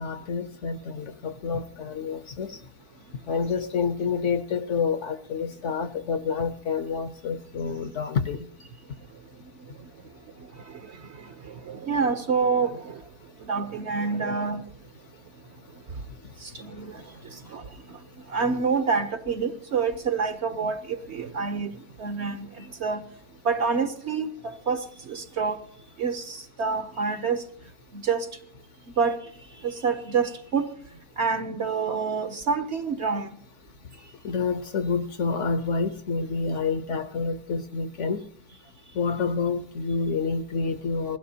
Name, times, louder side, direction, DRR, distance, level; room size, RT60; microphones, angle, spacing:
voice 1, 0.0-2.6 3.3-8.5 34.2-38.2 39.0-41.2, left 5 dB, 60° left, 0.9 m, -28 dB
voice 2, 11.2-13.0 13.4-14.6 16.4-17.6 17.9-18.0 18.3-21.7 22.0-23.0 23.4-25.6 26.0-27.4 27.9-28.3 29.0-29.2 29.6-30.7 31.2-33.3, right 5 dB, 55° right, 0.9 m, -27 dB
20.5 x 16.5 x 2.7 m
omnidirectional pair, 1.6 m